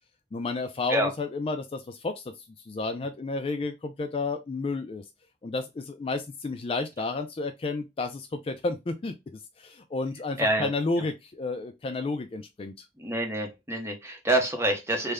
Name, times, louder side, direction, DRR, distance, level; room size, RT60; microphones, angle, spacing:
voice 1, 0.3-2.2 2.7-5.0 5.4-9.1 9.6-12.9, left 3 dB, 30° left, 0.3 m, -31 dB
voice 2, 10.4-10.7 13.0-15.1, right 1 dB, 15° right, 0.7 m, -27 dB
3.3 x 2.1 x 3.5 m
head